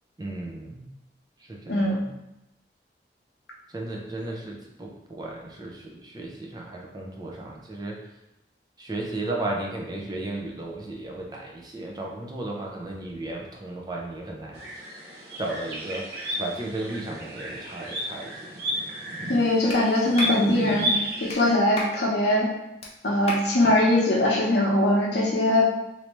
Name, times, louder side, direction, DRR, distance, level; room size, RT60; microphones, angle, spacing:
voice 1, 0.2-0.9 1.5-2.1 3.7-8.0 8.8-14.9 15.4-18.6, right 2 dB, 20° right, -1 dB, 0.5 m, -35 dB
sound 1, 14.5-21.5, equal, 65° right, 0.7 m, -32 dB
voice 2, 19.3-22.5 23.0-25.6, left 1 dB, 75° left, -3 dB, 0.8 m, -21 dB
Clapping, 19.7-19.8 20.2-20.4 21.3-21.4 21.8-22.0 22.8-22.9 23.3-23.5, left 2 dB, 35° left, 0.5 m, -32 dB
3.2 x 2.6 x 3.0 m, 0.93 s
head